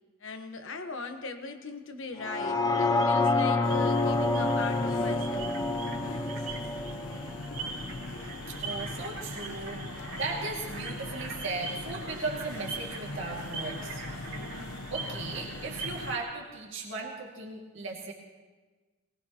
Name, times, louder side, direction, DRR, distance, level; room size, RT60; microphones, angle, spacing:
voice 1, 0.2-5.6, left 3 dB, 60° left, 6 dB, 1.2 m, -39 dB
sound 1, 2.2-8.3 8.8-8.9, left 2 dB, 15° left, 0.5 m, -28 dB
sound 2, 2.6-16.3, right 4 dB, 80° right, 2.7 m, -43 dB
sound 3, 3.6-16.2, left 2 dB, 85° left, 1.0 m, -40 dB
voice 2, 8.5-14.0 14.9-18.1, right 3 dB, 60° right, -2 dB, 2.2 m, -37 dB
21.5 x 19.5 x 3.0 m, 1.3 s
head